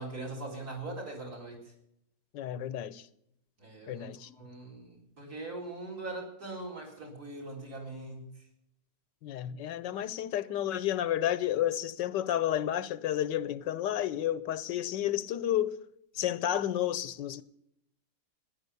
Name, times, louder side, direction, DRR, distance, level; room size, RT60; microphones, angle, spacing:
voice 1, 0.0-1.6 3.6-4.1 4.3-8.3, right 2 dB, 55° right, 4.5 m, -41 dB
voice 2, 2.3-3.1 3.9-4.3 9.2-15.8 16.1-17.4, left 11 dB, 80° left, 1.4 m, -31 dB
14.0 x 10.5 x 6.7 m
omnidirectional pair, 1.9 m